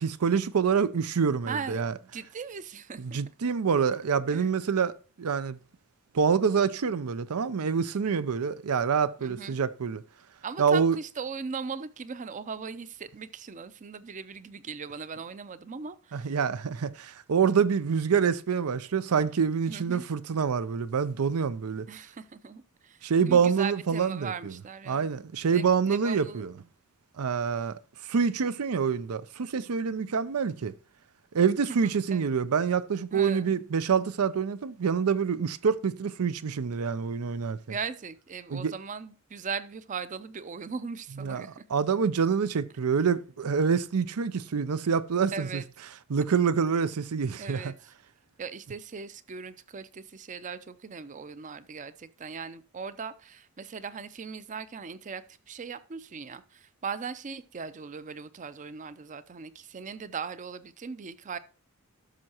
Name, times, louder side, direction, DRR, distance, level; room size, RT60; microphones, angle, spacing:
voice 1, 0.0-1.9 3.0-4.9 5.2-5.6 6.1-10.0 10.6-11.0 16.1-21.9 23.0-24.5 24.9-26.5 27.2-27.8 28.0-30.7 31.3-37.6 38.5-38.7 41.2-45.6 46.1-47.7, right 6 dB, 90° right, 0.5 m, -26 dB
voice 2, 1.5-3.2 4.3-4.5 9.2-9.6 10.4-16.4 19.7-20.1 21.9-25.1 25.5-26.5 31.8-32.2 33.1-33.5 37.7-41.6 45.3-45.7 47.4-47.9 48.4-61.4, right 5 dB, 35° right, 0.5 m, -39 dB
12.5 x 6.4 x 2.9 m
head